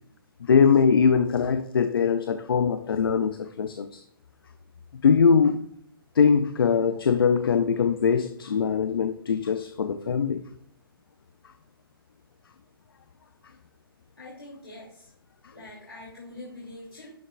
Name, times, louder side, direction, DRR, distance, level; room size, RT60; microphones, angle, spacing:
voice 1, 0.4-4.0 5.0-5.6 6.2-10.4, left 6 dB, 70° left, 0.6 m, -22 dB
voice 2, 14.2-15.1 15.5-17.1, left 2 dB, 85° left, 3.0 m, -44 dB
12.0 x 6.8 x 2.5 m
figure-of-eight pair, 130°, 13 cm